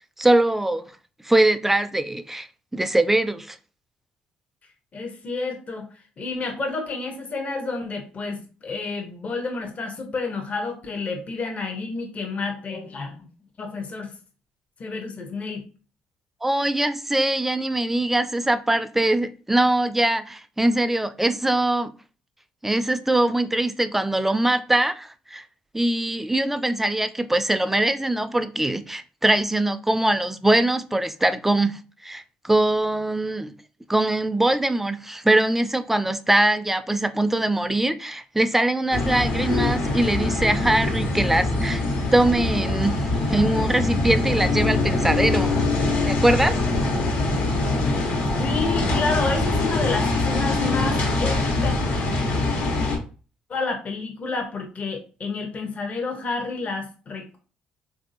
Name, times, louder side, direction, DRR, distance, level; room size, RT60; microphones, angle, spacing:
voice 1, 0.2-0.8 1.2-2.5 2.7-3.6 16.4-21.9 22.6-25.4 25.7-33.5 33.9-41.8 42.1-45.5 46.1-46.5, right 1 dB, 10° right, 0.4 m, -22 dB
voice 2, 4.9-13.3 13.6-14.1 14.8-15.6 48.4-51.7 53.5-57.4, left 3 dB, 45° left, 0.8 m, -30 dB
sound 1, 38.9-53.0, left 2 dB, 65° left, 1.3 m, -23 dB
3.2 x 2.6 x 2.6 m
supercardioid pair, 70°, 3 cm